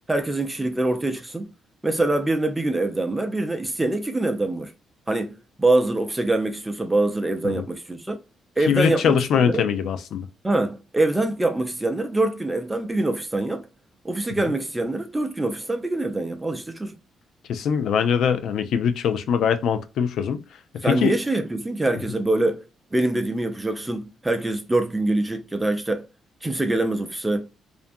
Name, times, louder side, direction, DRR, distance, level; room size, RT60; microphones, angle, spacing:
voice 1, 0.1-1.5 1.8-4.7 5.1-8.2 8.6-9.1 9.4-9.7 10.4-13.7 14.0-16.9 20.8-22.6 22.9-26.0 26.4-27.5, right 2 dB, 15° right, 0.5 m, -24 dB
voice 2, 8.7-10.2 17.5-20.4 20.8-21.1, left 7 dB, 75° left, 0.4 m, -22 dB
2.5 x 2.2 x 2.5 m
cardioid pair, 90°, 0 cm